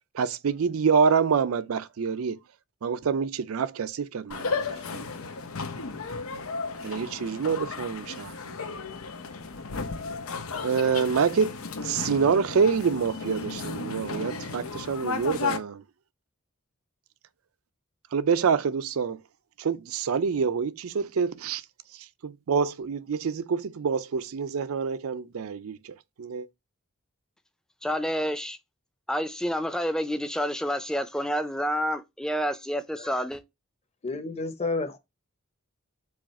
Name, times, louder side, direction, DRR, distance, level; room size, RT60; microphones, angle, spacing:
voice 1, 0.1-2.4 2.8-5.0 6.8-8.6 10.6-15.8 18.1-19.2 19.6-21.6 21.9-26.5, right 6 dB, 90° right, 0.5 m, -27 dB
sound 1, 4.3-15.6, left 4 dB, 90° left, 0.9 m, -34 dB
voice 2, 27.8-28.6 29.1-33.4, equal, 5° left, 0.4 m, -29 dB
voice 3, 34.0-35.0, left 3 dB, 30° left, 0.8 m, -30 dB
4.8 x 2.4 x 4.2 m
head